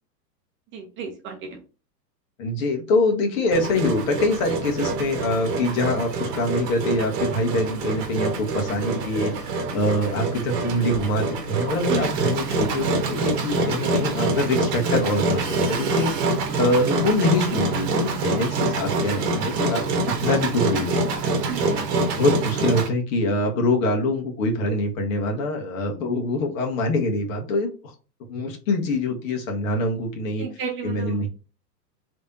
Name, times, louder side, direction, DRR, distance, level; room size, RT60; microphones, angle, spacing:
voice 1, 0.7-1.6 11.9-12.1 21.5-21.9 30.4-31.3, right 7 dB, 25° right, 2 dB, 0.7 m, -33 dB
voice 2, 2.4-16.1 16.6-19.8 20.2-21.0 22.2-27.7 28.3-30.5 30.8-31.3, left 2 dB, 55° left, 1 dB, 1.5 m, -24 dB
Engine, 3.5-22.9, right 3 dB, 40° right, 1.3 m, -25 dB
3.3 x 3.3 x 2.7 m, 0.34 s
hypercardioid pair, 120°, 50 cm